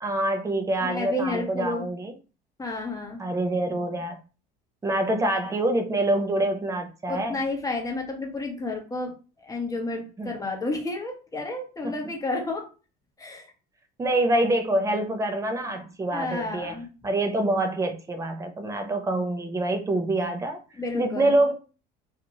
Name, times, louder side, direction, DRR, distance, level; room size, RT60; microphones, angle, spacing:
voice 1, 0.0-2.1 3.2-4.2 4.8-7.4 10.2-10.3 11.8-11.9 14.0-16.7 17.0-20.6 20.9-21.5, right 1 dB, 15° right, 6 dB, 0.6 m, -26 dB
voice 2, 0.8-1.9 2.6-3.2 7.1-12.6 13.2-13.5 16.1-16.9 20.8-21.4, left 2 dB, 15° left, 1 dB, 0.9 m, -31 dB
2.6 x 2.3 x 3.0 m, 0.34 s
supercardioid pair, 100°, 21 cm